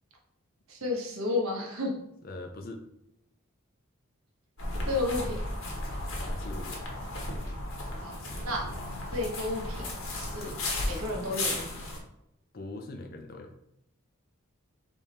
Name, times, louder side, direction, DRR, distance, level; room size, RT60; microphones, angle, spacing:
voice 1, 0.7-1.9 4.9-5.4 8.0-8.1 8.4-8.7 9.1-9.9 10.1-10.5 10.8-11.8, left 2 dB, 85° right, 0 dB, 1.3 m, -31 dB
voice 2, 2.2-2.8 6.1-6.8 12.5-13.5, left 2 dB, 45° left, 4 dB, 0.5 m, -41 dB
sound 1, 4.6-12.0, left 1 dB, 65° left, 1.2 m, -35 dB
3.5 x 3.5 x 4.2 m, 0.80 s
head